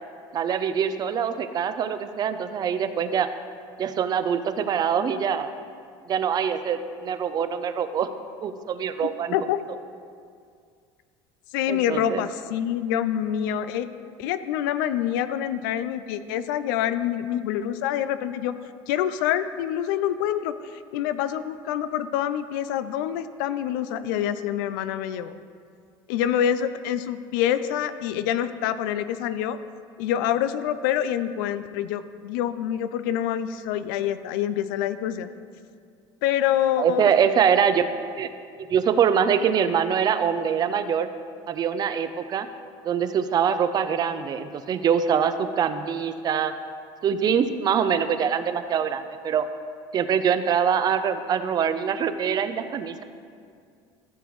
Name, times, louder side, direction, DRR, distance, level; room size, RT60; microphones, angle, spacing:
voice 1, 0.3-3.3 3.8-5.5 6.1-8.1 8.4-9.3 11.7-12.2 36.8-37.9 38.2-38.3 38.6-41.1 41.5-42.5 42.8-46.5 47.0-49.4 49.9-53.0, right 7 dB, 40° right, 11 dB, 0.5 m, -24 dB
voice 2, 9.0-9.6 11.5-13.9 14.2-18.5 18.9-25.3 26.1-29.6 30.0-35.3 36.2-37.1, left 10 dB, 90° left, 12 dB, 0.4 m, -26 dB
14.0 x 6.8 x 3.1 m, 2.2 s
supercardioid pair, 110°, 11 cm